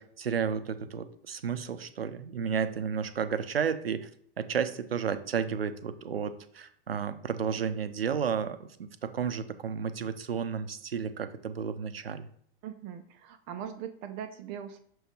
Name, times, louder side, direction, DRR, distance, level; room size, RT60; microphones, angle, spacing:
voice 1, 0.0-4.1 4.4-12.3, right 7 dB, 85° right, 11 dB, 0.6 m, -32 dB
voice 2, 12.6-14.8, right 9 dB, 35° right, 8 dB, 0.4 m, -40 dB
6.3 x 3.0 x 5.0 m, 0.62 s
figure-of-eight pair, 90°, 29 cm